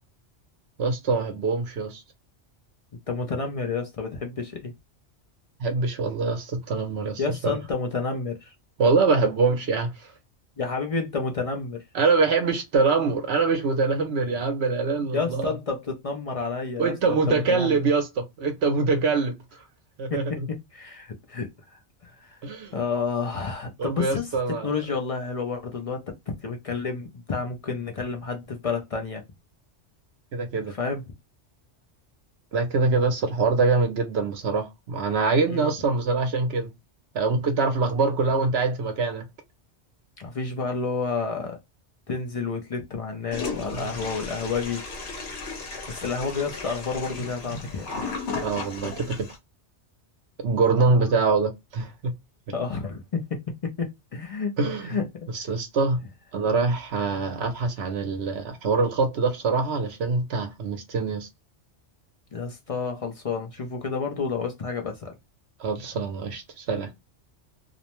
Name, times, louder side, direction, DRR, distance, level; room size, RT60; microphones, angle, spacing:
voice 1, 0.8-2.0 5.6-7.6 8.8-10.1 11.9-15.5 16.8-19.3 20.0-20.5 22.4-22.7 23.8-24.7 30.3-30.7 32.5-36.7 37.1-39.2 43.6-43.8 48.4-49.3 50.4-52.1 54.6-55.0 55.3-56.0 56.3-61.3 65.6-66.9, right 4 dB, 70° right, 0.9 m, -24 dB
voice 2, 3.1-4.7 7.2-8.5 10.6-11.8 15.1-17.8 20.1-21.5 22.0-22.4 22.7-29.2 30.7-31.0 35.5-35.7 40.2-41.6 42.1-44.8 45.9-47.9 52.5-54.5 54.8-55.3 62.3-65.2, left 4 dB, 50° left, 0.4 m, -30 dB
Toilet flush, 43.3-49.4, left 4 dB, 65° left, 1.0 m, -35 dB
2.5 x 2.1 x 2.9 m
omnidirectional pair, 1.2 m